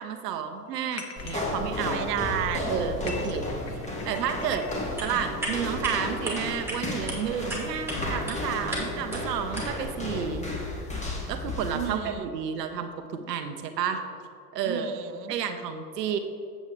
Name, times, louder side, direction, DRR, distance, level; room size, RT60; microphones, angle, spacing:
voice 1, 0.0-2.1 2.7-4.6 5.0-10.5 11.3-14.0 14.5-14.9 15.3-16.2, right 7 dB, 80° right, 6 dB, 0.8 m, -31 dB
sound 1, 0.9-1.4 2.0-2.4 2.9-4.9, left 5 dB, 30° left, 1.0 m, -43 dB
sound 2, 1.2-11.9, left 1 dB, 15° left, 1.7 m, -33 dB
voice 2, 1.9-2.7 3.0-3.5 11.7-12.3 14.6-15.3, right 10 dB, 30° right, 9 dB, 0.4 m, -33 dB
sound 3, 4.7-9.9, right 1 dB, 5° right, 2.0 m, -36 dB
8.4 x 7.1 x 3.4 m, 2.4 s
hypercardioid pair, 95°, 48 cm